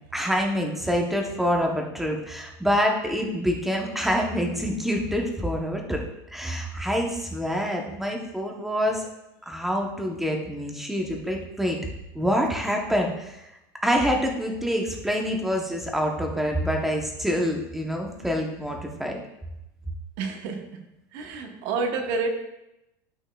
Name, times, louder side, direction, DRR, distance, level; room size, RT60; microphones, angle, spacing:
voice 1, 0.1-6.0 6.3-9.1 9.5-11.8 12.1-13.4 13.8-19.2, equal, ahead, 1 dB, 0.8 m, -26 dB
voice 2, 20.2-20.8 21.1-22.3, right 4 dB, 50° right, 5 dB, 1.0 m, -29 dB
12.0 x 5.3 x 2.3 m, 0.88 s
supercardioid pair, 165°, 10 cm